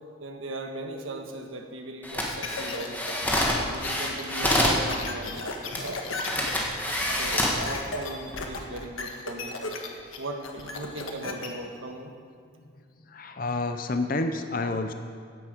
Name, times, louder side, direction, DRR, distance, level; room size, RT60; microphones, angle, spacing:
voice 1, 0.2-3.2 3.7-5.5 5.8-6.0 7.0-9.6 10.2-12.1, right 2 dB, 80° right, 4 dB, 1.4 m, -38 dB
sound 1, 2.0-4.8 5.7-5.8 6.2-7.6 8.2-8.4, left 1 dB, 10° left, 1.5 m, -27 dB
sound 2, 2.4-11.5, left 3 dB, 85° left, 1.5 m, -36 dB
voice 2, 13.1-14.9, left 2 dB, 45° left, 7 dB, 0.6 m, -29 dB
15.5 x 10.5 x 5.2 m, 2.1 s
head